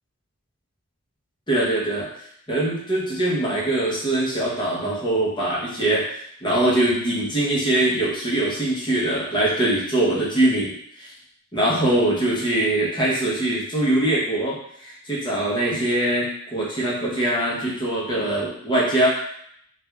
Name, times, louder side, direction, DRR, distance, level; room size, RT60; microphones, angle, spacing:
voice 1, 1.5-2.1 2.5-6.1 6.4-11.1 11.5-19.1, right 1 dB, 20° left, -5 dB, 1.0 m, -22 dB
3.3 x 2.6 x 3.4 m, 0.67 s
head